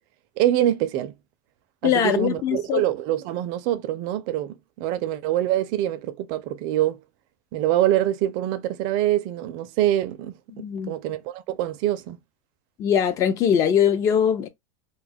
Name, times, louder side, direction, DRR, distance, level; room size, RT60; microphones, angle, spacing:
voice 1, 0.4-1.1 1.8-7.0 7.5-10.3 10.9-12.2, right 13 dB, 45° right, 0.4 m, -24 dB
voice 2, 1.8-2.8 10.5-10.9 12.8-14.5, left 8 dB, 30° left, 0.4 m, -21 dB
2.2 x 2.1 x 3.4 m
supercardioid pair, 150°, 10 cm